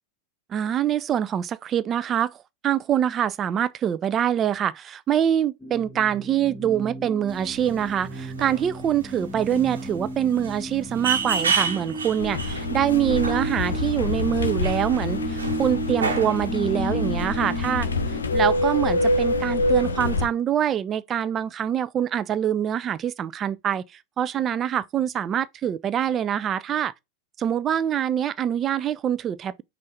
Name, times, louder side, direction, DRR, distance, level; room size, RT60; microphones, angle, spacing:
voice 1, 0.5-2.4 2.6-17.9 18.3-23.8 24.2-26.9 27.4-29.6, right 9 dB, 25° right, 0.3 m, -25 dB
sound 1, 5.6-18.2, right 1 dB, ahead, 1.1 m, -33 dB
sound 2, 7.3-16.5, right 5 dB, 70° right, 1.0 m, -31 dB
sound 3, 12.2-20.3, left 2 dB, 70° left, 0.6 m, -26 dB
5.3 x 2.5 x 3.2 m
figure-of-eight pair, 90°, 0 cm